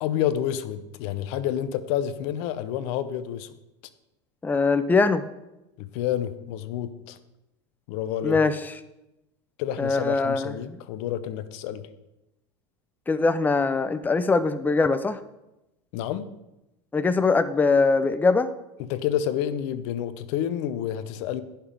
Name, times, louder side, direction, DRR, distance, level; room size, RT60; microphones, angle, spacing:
voice 1, 0.0-3.5 5.8-7.2 7.9-8.4 9.6-11.9 15.9-16.3 18.8-21.4, left 10 dB, 65° left, 13 dB, 0.8 m, -29 dB
voice 2, 4.4-5.2 8.2-8.6 9.8-10.5 13.1-15.2 16.9-18.5, left 4 dB, 10° left, 12 dB, 0.5 m, -22 dB
16.0 x 5.9 x 3.4 m, 0.93 s
hypercardioid pair, 90°, 16 cm